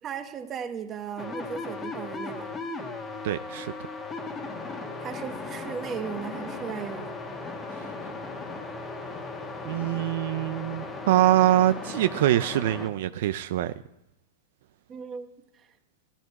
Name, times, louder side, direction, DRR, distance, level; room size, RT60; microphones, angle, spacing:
voice 1, 0.0-2.5 5.0-7.1 14.9-15.3, right 7 dB, 20° right, 1.1 m, -36 dB
sound 1, 1.2-12.9, left 3 dB, 15° left, 1.4 m, -37 dB
voice 2, 3.2-3.7 9.6-13.7, right 13 dB, 60° right, 0.5 m, -24 dB
14.5 x 13.0 x 4.7 m
supercardioid pair, 160°, 0 cm